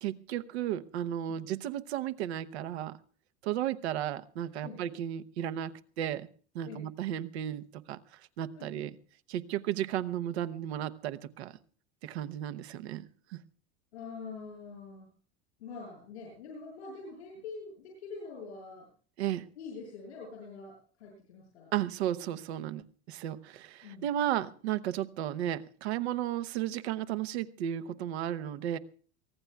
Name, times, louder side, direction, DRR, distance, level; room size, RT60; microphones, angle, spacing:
voice 1, 0.0-3.0 3.4-6.3 6.5-9.0 9.3-11.6 12.0-13.4 19.2-19.5 21.7-28.8, right 11 dB, 80° right, 11 dB, 1.0 m, -34 dB
voice 2, 13.9-15.1 15.6-18.9 19.6-21.7 23.8-24.1, left 4 dB, 90° left, -4 dB, 7.6 m, -45 dB
24.5 x 18.0 x 2.3 m, 0.43 s
hypercardioid pair, 90°, 32 cm